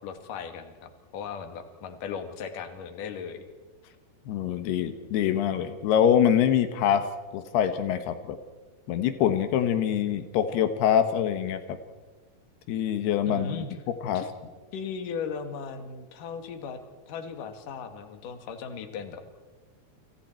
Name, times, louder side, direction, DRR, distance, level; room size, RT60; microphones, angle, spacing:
voice 1, 0.0-3.4 13.3-13.7 14.1-14.3 14.7-16.8 17.1-19.2, left 6 dB, 60° left, 7 dB, 3.3 m, -37 dB
voice 2, 4.3-7.1 7.3-8.4 8.9-11.8 12.7-13.6 14.0-14.2, left 9 dB, 85° left, 9 dB, 3.3 m, -24 dB
29.5 x 28.0 x 4.5 m, 1.3 s
omnidirectional pair, 4.5 m